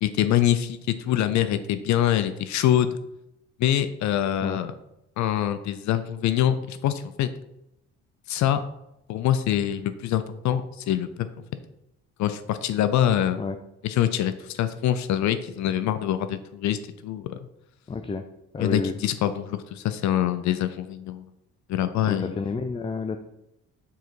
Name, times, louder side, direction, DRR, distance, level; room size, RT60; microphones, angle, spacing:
voice 1, 0.0-3.0 3.6-4.7 5.2-7.3 8.3-8.6 9.1-11.3 12.2-13.4 13.8-17.3 18.6-21.2 21.7-22.4, left 11 dB, 70° left, 11 dB, 0.5 m, -24 dB
voice 2, 17.9-18.2 18.5-19.0 22.1-23.2, left 4 dB, 20° left, 7 dB, 0.4 m, -29 dB
7.2 x 3.9 x 4.5 m, 0.84 s
cardioid pair, 100°, 29 cm